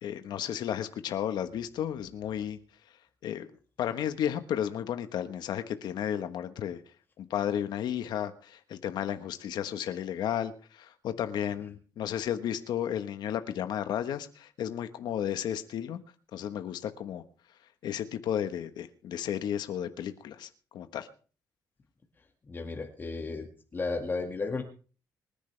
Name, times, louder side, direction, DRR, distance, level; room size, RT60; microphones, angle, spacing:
voice 1, 0.0-2.6 3.2-3.5 3.8-6.8 7.2-16.0 16.3-17.2 17.8-21.1, left 10 dB, 75° left, 10 dB, 1.3 m, -33 dB
voice 2, 22.5-23.5 23.7-24.6, left 3 dB, 30° left, 4 dB, 2.0 m, -33 dB
25.5 x 10.5 x 3.4 m, 0.38 s
cardioid pair, 130°, 7 cm